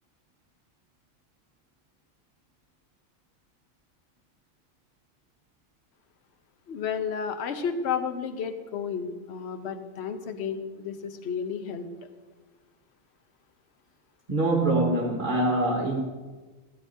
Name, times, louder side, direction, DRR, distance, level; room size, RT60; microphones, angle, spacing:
voice 1, 6.7-11.9, left 6 dB, 55° left, 1.0 m, -32 dB
voice 2, 14.3-16.0, right 2 dB, 35° right, 1.4 m, -24 dB
16.0 x 10.0 x 2.7 m
omnidirectional pair, 1.4 m